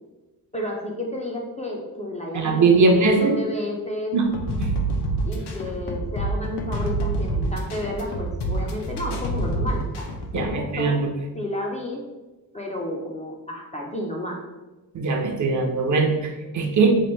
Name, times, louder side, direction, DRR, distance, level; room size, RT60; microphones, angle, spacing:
voice 1, 0.5-4.1 5.3-10.1 10.3-10.9 11.3-12.0 12.5-14.4, left 1 dB, 20° left, -2 dB, 0.3 m, -31 dB
voice 2, 2.3-3.4 4.1-4.3 4.6-4.7 10.3-11.1 14.9-17.0, right 3 dB, 50° right, 3 dB, 0.5 m, -20 dB
sound 1, 4.3-10.5, right 2 dB, 90° left, 0.6 m, -27 dB
3.0 x 2.5 x 4.2 m, 1.1 s
wide cardioid pair, 165°, 39 cm